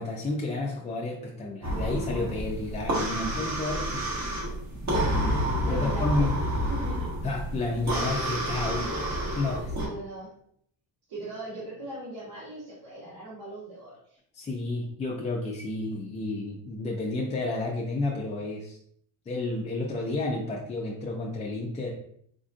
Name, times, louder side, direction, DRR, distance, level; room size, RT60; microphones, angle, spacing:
voice 1, 0.0-4.1 5.1-6.3 7.2-8.8 9.4-9.7 14.3-18.8 19.3-21.9, left 2 dB, 15° left, -2 dB, 0.3 m, -31 dB
sound 1, 1.6-9.9, right 1 dB, 35° right, 1.4 m, -29 dB
voice 2, 5.6-6.3 6.7-7.1 8.6-8.9 9.6-10.3 11.1-14.2, right 1 dB, 55° right, -8 dB, 1.4 m, -40 dB
4.3 x 2.5 x 2.4 m, 0.67 s
cardioid pair, 110°, 47 cm